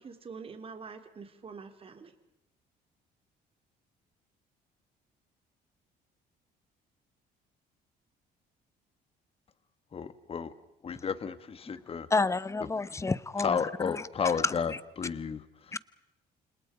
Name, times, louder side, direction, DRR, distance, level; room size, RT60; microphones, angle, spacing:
voice 1, 0.0-2.1, right 5 dB, 35° right, 7 dB, 3.3 m, -45 dB
voice 2, 9.9-10.5 10.8-12.1 13.4-15.8, left 6 dB, 35° left, 13 dB, 1.6 m, -32 dB
voice 3, 12.1-13.6 13.8-14.0 14.4-14.5 15.7-15.8, left 3 dB, 15° left, 17 dB, 1.1 m, -29 dB
30.0 x 27.0 x 5.2 m, 0.88 s
cardioid pair, 110°, 17 cm